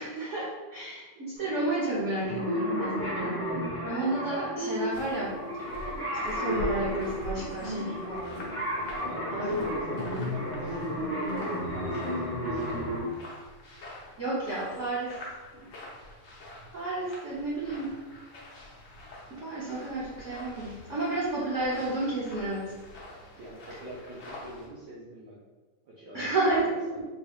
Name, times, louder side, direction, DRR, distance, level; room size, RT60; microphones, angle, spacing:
voice 1, 0.0-3.4 3.8-5.7 6.1-8.4 9.3-9.6 14.2-15.2 15.5-15.7 16.4-18.0 19.3-22.7 26.1-26.7 27.0-27.1, right 2 dB, 85° right, -8 dB, 0.6 m, -31 dB
sound 1, 1.4-13.0, equal, 35° left, 1.3 m, -33 dB
sound 2, 4.9-24.7, equal, 80° left, 0.7 m, -45 dB
voice 2, 8.0-8.5 8.9-13.2 23.4-25.4 25.8-27.0, right 1 dB, 65° right, -6 dB, 1.1 m, -44 dB
3.6 x 3.4 x 2.3 m, 1.3 s
omnidirectional pair, 2.4 m